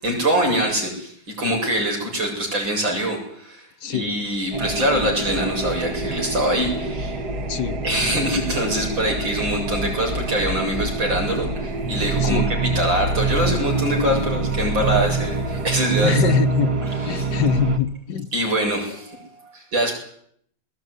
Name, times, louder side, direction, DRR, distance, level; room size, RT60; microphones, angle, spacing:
voice 1, 0.0-7.2 7.8-16.4 17.2-17.3 18.3-19.9, right 1 dB, 85° right, 0 dB, 8.8 m, -24 dB
voice 2, 3.8-4.1 7.5-7.8 12.2-12.5 16.0-16.7 17.1-18.3, left 10 dB, 65° left, 9 dB, 1.8 m, -24 dB
sound 1, 4.5-17.8, right 3 dB, 55° right, 2.5 m, -25 dB
21.0 x 19.5 x 9.9 m, 0.67 s
omnidirectional pair, 2.0 m